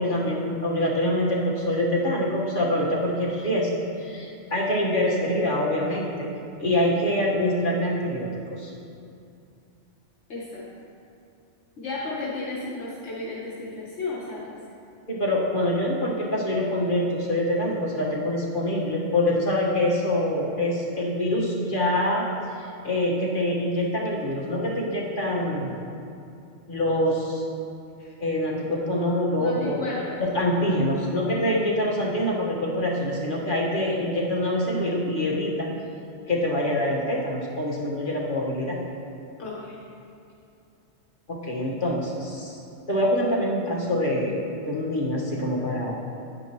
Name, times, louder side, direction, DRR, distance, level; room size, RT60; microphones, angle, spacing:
voice 1, 0.0-3.7 4.0-6.3 6.6-8.7 15.1-22.2 22.6-25.7 26.7-27.4 28.2-29.8 30.3-35.7 36.3-38.8 41.3-42.6 42.9-46.0, left 1 dB, 45° left, -4 dB, 1.6 m, -25 dB
voice 2, 10.3-10.6 11.8-14.6 28.0-28.1 29.4-30.2 30.7-30.9 39.4-39.8, left 2 dB, 70° left, -7 dB, 1.5 m, -33 dB
9.6 x 9.3 x 3.0 m, 2.5 s
omnidirectional pair, 1.2 m